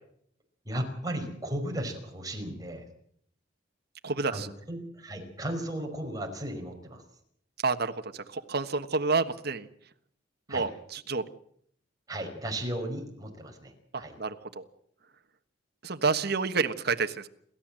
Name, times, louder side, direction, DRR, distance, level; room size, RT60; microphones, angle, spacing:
voice 1, 0.7-2.8 4.3-7.0 10.5-10.7 12.1-14.1, right 1 dB, 20° right, 3 dB, 5.3 m, -35 dB
voice 2, 4.0-4.5 7.6-9.7 10.5-11.2 13.9-14.6 15.8-17.3, right 4 dB, 60° right, 7 dB, 1.4 m, -29 dB
28.5 x 13.5 x 7.6 m, 0.67 s
head